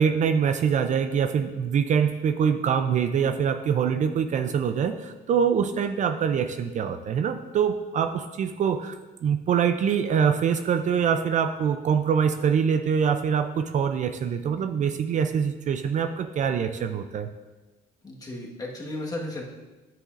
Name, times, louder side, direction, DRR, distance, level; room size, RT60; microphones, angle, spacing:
voice 1, 0.0-9.0 9.2-17.3, right 7 dB, 45° right, 8 dB, 0.4 m, -24 dB
voice 2, 18.0-19.4, left 1 dB, 20° left, -2 dB, 1.5 m, -34 dB
9.8 x 7.7 x 2.5 m, 1.2 s
cardioid pair, 110°, 17 cm